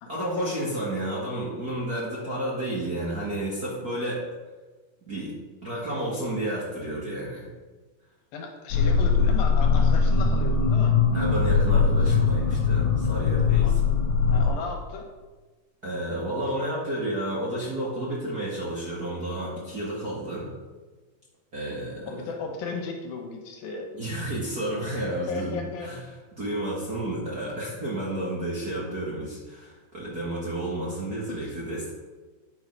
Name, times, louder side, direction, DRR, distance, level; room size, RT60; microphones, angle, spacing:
voice 1, 0.1-4.2 5.1-5.3 5.6-7.4 11.1-13.7 15.8-20.5 21.5-22.3 23.9-26.0 26.4-31.9, right 1 dB, 40° right, -7 dB, 1.5 m, -31 dB
voice 2, 8.3-11.0 13.6-13.8 14.3-15.1 22.1-23.9 25.3-25.9 31.3-31.5, left 4 dB, 80° left, 2 dB, 2.9 m, -35 dB
sound 1, 8.7-14.5, left 5 dB, 60° left, 2.2 m, -21 dB
9.4 x 5.5 x 4.7 m, 1.3 s
omnidirectional pair, 4.1 m